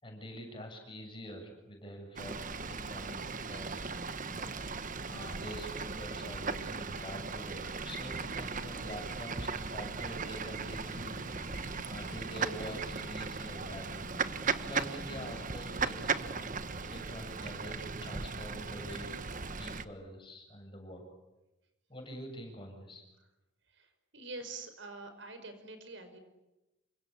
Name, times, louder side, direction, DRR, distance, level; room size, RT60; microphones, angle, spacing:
voice 1, 0.0-4.0 4.3-14.1 14.6-21.0 21.9-23.0, equal, 25° left, 3 dB, 7.8 m, -46 dB
Fowl / Bird, 2.2-19.8, right 4 dB, 45° right, 1.3 m, -37 dB
sound 1, 8.1-17.1, left 2 dB, 65° left, 1.3 m, -54 dB
voice 2, 23.7-26.2, right 3 dB, 70° right, 9 dB, 5.4 m, -47 dB
28.0 x 25.0 x 8.6 m, 0.98 s
head